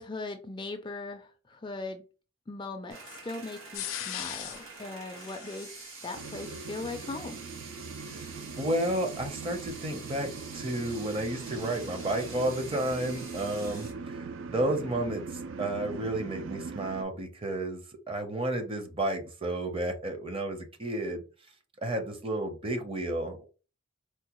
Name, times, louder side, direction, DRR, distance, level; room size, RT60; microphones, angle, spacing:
voice 1, 0.0-2.0 2.5-5.7 6.0-7.4, left 3 dB, 25° left, 7 dB, 0.3 m, -39 dB
sound 1, 2.9-13.9, right 4 dB, 85° right, 1.2 m, -46 dB
sound 2, 3.7-4.7 5.1-7.2 9.8-13.9, left 11 dB, 85° left, 0.5 m, -43 dB
sound 3, 6.1-17.0, right 4 dB, 70° right, 0.4 m, -41 dB
voice 2, 8.6-15.2 15.6-21.2 21.8-23.4, right 1 dB, 25° right, 6 dB, 0.6 m, -32 dB
4.4 x 2.1 x 2.9 m, 0.34 s
head